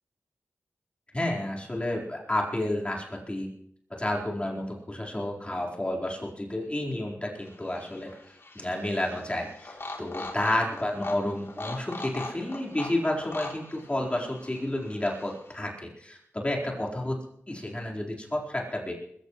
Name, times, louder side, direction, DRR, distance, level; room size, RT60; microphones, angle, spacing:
voice 1, 1.1-3.5 3.9-8.1 8.5-17.2 17.5-18.9, left 1 dB, 20° left, -2 dB, 4.3 m, -31 dB
Pig Toy, 7.4-15.6, left 2 dB, 50° left, 3.2 m, -42 dB
22.0 x 14.5 x 3.2 m, 0.67 s
cardioid pair, 55°, 5 cm